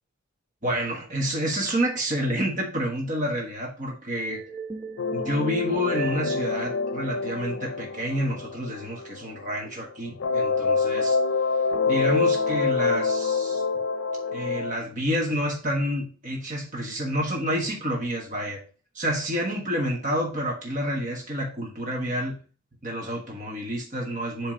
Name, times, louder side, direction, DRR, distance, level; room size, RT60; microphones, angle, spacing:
voice 1, 0.6-4.4 5.1-11.2 11.9-13.6 14.3-18.6 18.9-22.4 22.8-24.5, equal, 40° right, 0 dB, 1.5 m, -29 dB
sound 1, 4.3-7.6, right 6 dB, ahead, 1.3 m, -40 dB
sound 2, 5.0-9.8 10.2-14.7, left 4 dB, 90° left, 0.5 m, -26 dB
7.5 x 3.3 x 5.1 m, 0.38 s
head